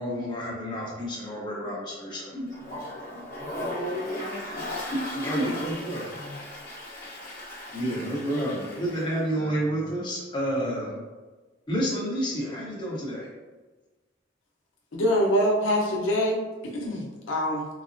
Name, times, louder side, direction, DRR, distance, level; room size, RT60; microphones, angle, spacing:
voice 1, 0.0-2.8 3.1-3.2 4.9-6.1 7.7-11.1 11.7-13.3 15.0-15.1, equal, 25° left, -6 dB, 0.9 m, -30 dB
Toilet flush, 2.5-9.2, left 1 dB, 50° left, 0.9 m, -37 dB
voice 2, 3.3-4.7 5.3-6.4, right 1 dB, 45° right, -2 dB, 0.6 m, -37 dB
voice 3, 14.9-17.7, equal, 85° left, -1 dB, 0.6 m, -25 dB
3.9 x 2.1 x 2.5 m, 1.2 s
head